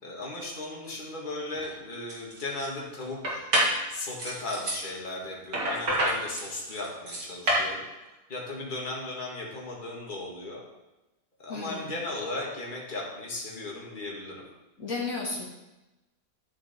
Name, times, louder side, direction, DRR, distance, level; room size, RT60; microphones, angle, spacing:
voice 1, 0.0-3.5 3.9-7.9 8.3-10.6 11.4-14.4, left 2 dB, 35° left, -3 dB, 2.1 m, -36 dB
sound 1, 1.5-1.7 2.1-2.7 3.2-3.8 4.2-4.8 5.5-7.7, right 1 dB, 80° right, 2.7 m, -27 dB
voice 2, 11.5-11.9 14.8-15.5, left 3 dB, 65° left, -3 dB, 2.1 m, -33 dB
12.5 x 6.4 x 4.4 m, 1.0 s
omnidirectional pair, 1.6 m